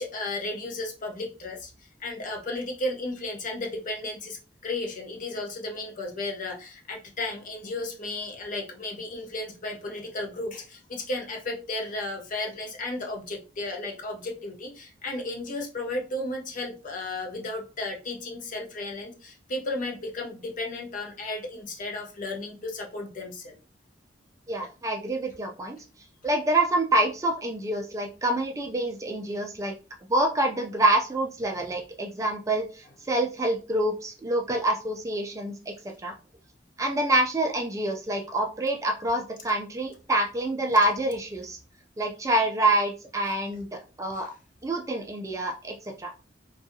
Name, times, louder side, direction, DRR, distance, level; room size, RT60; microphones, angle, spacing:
voice 1, 0.0-1.7 2.0-4.4 4.6-23.6 24.6-24.7 44.1-44.3, left 2 dB, 45° left, 1 dB, 0.6 m, -34 dB
voice 2, 24.5-25.8 26.2-29.7 30.1-35.7 36.0-36.1 36.8-41.6 42.0-43.7 44.0-44.3 44.6-46.1, right 1 dB, 15° right, 2 dB, 0.3 m, -26 dB
2.6 x 2.3 x 2.6 m, 0.33 s
head